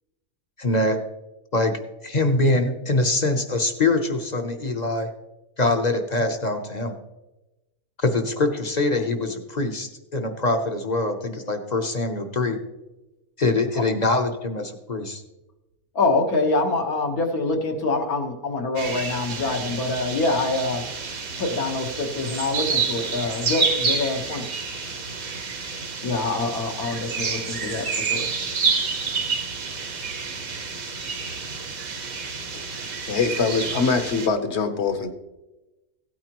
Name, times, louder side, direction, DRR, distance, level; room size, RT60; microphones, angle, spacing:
voice 1, 0.6-1.1 1.5-5.1 5.6-7.0 8.0-12.6 13.4-15.2, left 2 dB, 35° left, 5 dB, 0.8 m, -24 dB
voice 2, 16.0-20.8 21.4-24.5 26.0-28.3, left 3 dB, 80° left, 4 dB, 1.8 m, -25 dB
sound 1, 18.8-34.3, right 5 dB, 70° right, 1.7 m, -29 dB
voice 3, 33.1-35.1, left 4 dB, 55° left, 9 dB, 1.1 m, -23 dB
16.0 x 9.2 x 3.0 m, 1.0 s
omnidirectional pair, 1.5 m